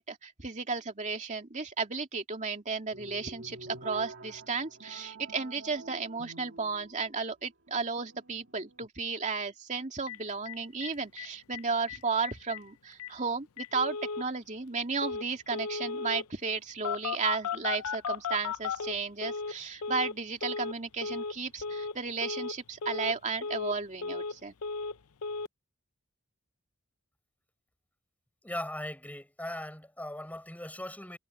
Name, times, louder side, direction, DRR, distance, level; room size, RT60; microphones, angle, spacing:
voice 1, 0.0-24.5, right 4 dB, 35° right, 2.5 m, -34 dB
sound 1, 2.9-7.3 7.7-8.9, right 2 dB, 60° right, 2.7 m, -48 dB
Telephone, 10.1-10.2 10.5-10.6 10.8-10.9 11.2-11.6 11.9-12.0 12.2-12.6 13.0-13.1 13.6-14.2 15.0-15.2 15.5-16.2 16.8-19.5 19.8-20.1 20.4-20.7 21.0-21.3 21.6-21.9 22.2-22.5 22.8-23.1 23.4-24.3 24.6-25.0 25.2-25.5, left 5 dB, 75° left, 0.6 m, -35 dB
voice 2, 28.4-31.2, left 1 dB, 5° left, 6.8 m, -39 dB
head